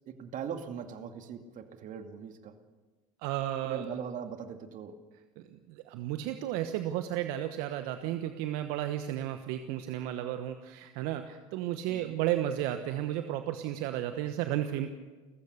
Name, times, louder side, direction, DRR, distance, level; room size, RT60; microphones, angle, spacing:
voice 1, 0.1-2.5 3.6-5.0 11.9-12.2, right 7 dB, 50° right, 7 dB, 2.3 m, -40 dB
voice 2, 3.2-3.9 5.4-14.9, right 12 dB, 65° right, 8 dB, 1.2 m, -33 dB
30.0 x 15.0 x 6.8 m, 1.3 s
hypercardioid pair, 75°, 17 cm